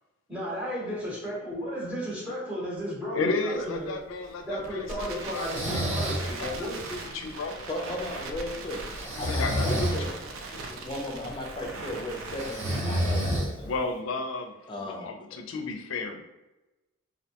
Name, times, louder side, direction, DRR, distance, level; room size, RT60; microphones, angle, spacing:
voice 1, 0.3-3.9 4.4-6.8, equal, 5° right, -7 dB, 0.9 m, -34 dB
voice 2, 3.1-7.6 9.2-10.1 13.6-14.5 14.8-16.3, left 3 dB, 80° left, 6 dB, 0.4 m, -33 dB
Crackle, 3.5-12.8, right 3 dB, 75° right, 0.4 m, -40 dB
Breathing, 5.3-6.3 9.0-10.0 12.4-13.8, equal, 35° right, 0.7 m, -28 dB
voice 3, 7.7-8.9 9.2-10.1 10.5-13.7 14.7-15.1, left 1 dB, 25° left, 0 dB, 0.4 m, -36 dB
2.6 x 2.1 x 2.8 m, 1.0 s
head